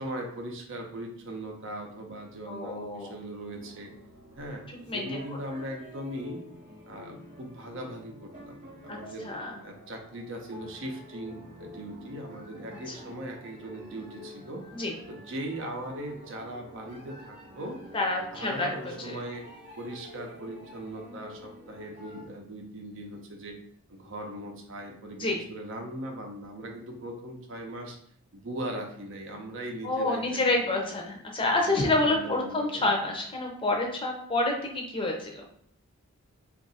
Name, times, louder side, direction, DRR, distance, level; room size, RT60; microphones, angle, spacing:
voice 1, 0.0-3.9 4.4-4.6 4.9-6.4 6.9-9.3 9.6-14.7 15.1-17.8 18.3-19.4 19.8-23.6 23.9-28.0 28.3-30.8 31.5-32.9, right 1 dB, 60° right, 2 dB, 0.6 m, -39 dB
voice 2, 2.5-3.1 4.9-5.1 8.9-9.0 9.2-9.5 14.7-14.9 17.9-19.2 25.2-25.4 29.8-35.4, left 2 dB, 25° left, 0 dB, 0.6 m, -28 dB
sound 1, 3.4-22.2, left 1 dB, 35° right, 0.9 m, -48 dB
2.7 x 2.5 x 4.0 m, 0.67 s
head